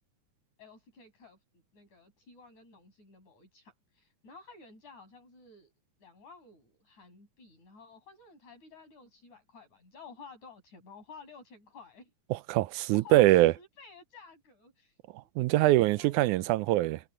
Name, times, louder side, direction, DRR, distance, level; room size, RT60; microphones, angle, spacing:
voice 1, 0.6-1.4 1.7-5.7 6.0-12.1 12.7-15.0 15.6-16.3, left 4 dB, 70° left, 9.3 m, -53 dB
voice 2, 12.3-13.5 15.4-17.0, right 16 dB, 85° right, 2.1 m, -23 dB
omnidirectional pair, 3.4 m